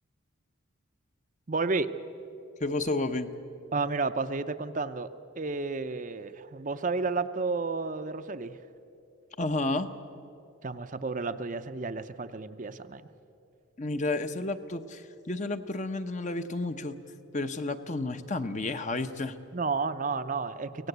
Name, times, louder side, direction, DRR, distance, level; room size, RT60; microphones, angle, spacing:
voice 1, 1.5-1.9 3.7-5.1 5.4-8.6 10.6-13.0 19.5-20.9, right 4 dB, 35° right, 10 dB, 0.6 m, -31 dB
voice 2, 2.6-3.3 9.4-9.9 13.8-17.0 17.3-19.4, left 2 dB, 35° left, 9 dB, 0.8 m, -31 dB
24.5 x 18.0 x 8.0 m, 2.7 s
head